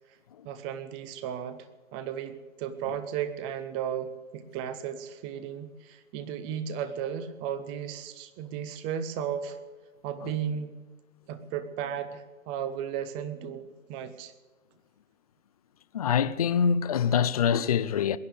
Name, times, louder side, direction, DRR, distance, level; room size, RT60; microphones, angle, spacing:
voice 1, 0.4-9.6 10.0-10.7 11.3-14.3, right 8 dB, 10° right, 0.6 m, -35 dB
voice 2, 15.9-18.2, left 7 dB, 30° left, 0.4 m, -24 dB
21.0 x 10.0 x 6.6 m
hypercardioid pair, 155°, 40 cm